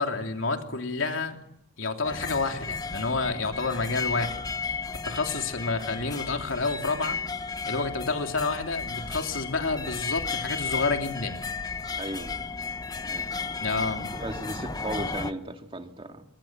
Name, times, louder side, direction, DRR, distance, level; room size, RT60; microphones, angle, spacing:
voice 1, 0.0-1.4 1.8-4.4 5.0-7.2 7.7-11.4 13.6-14.0, left 3 dB, 85° left, 4 dB, 3.2 m, -29 dB
sound 1, 2.0-15.3, left 4 dB, 20° left, 0.9 m, -34 dB
voice 2, 12.0-12.4 13.0-13.3 14.1-16.2, right 1 dB, 25° right, 5 dB, 2.1 m, -36 dB
27.5 x 23.0 x 7.5 m, 0.77 s
head